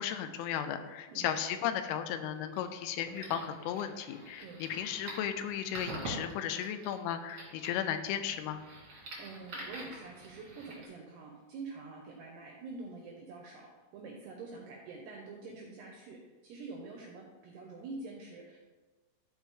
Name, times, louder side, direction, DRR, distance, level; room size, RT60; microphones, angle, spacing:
voice 1, 0.0-8.6, left 9 dB, 85° left, 9 dB, 3.0 m, -35 dB
voice 2, 1.1-1.4 4.4-4.6 9.0-13.7 13.9-16.2 16.4-18.6, right 3 dB, 80° right, 0 dB, 2.4 m, -46 dB
sound 1, 2.3-10.8, right 2 dB, 55° right, 1.6 m, -47 dB
12.5 x 4.5 x 3.7 m, 1.3 s
omnidirectional pair, 5.7 m